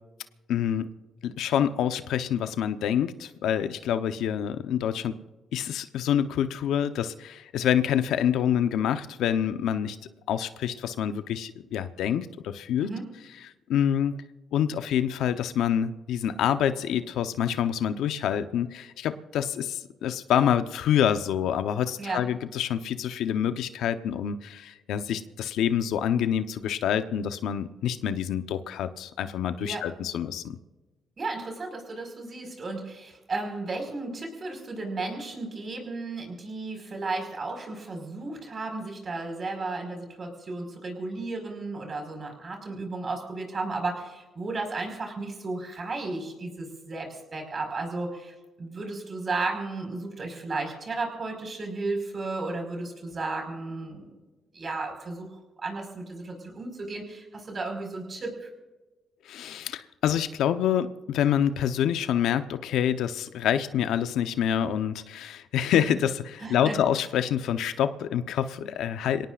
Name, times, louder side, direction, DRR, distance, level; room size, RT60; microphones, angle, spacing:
voice 1, 0.5-0.9 1.2-5.2 5.5-10.0 10.3-12.9 13.4-14.2 14.5-30.6 59.2-69.3, left 9 dB, 80° left, 10 dB, 0.9 m, -27 dB
voice 2, 31.2-54.1 54.5-55.3 55.6-58.5 66.4-66.8, right 3 dB, 40° right, 4 dB, 5.1 m, -34 dB
26.5 x 18.0 x 2.5 m, 1.2 s
cardioid pair, 90°, 0 cm